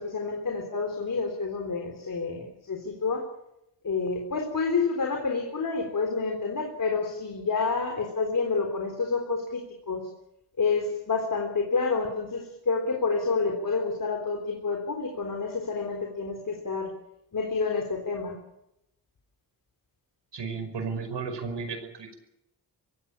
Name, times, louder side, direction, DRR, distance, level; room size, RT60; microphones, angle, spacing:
voice 1, 0.0-3.2 3.8-10.1 10.6-16.9 17.3-18.4, left 4 dB, 50° left, 3 dB, 3.7 m, -29 dB
voice 2, 20.3-22.2, right 5 dB, 85° right, 7 dB, 5.3 m, -34 dB
25.5 x 16.0 x 8.7 m, 0.84 s
wide cardioid pair, 145°, 42 cm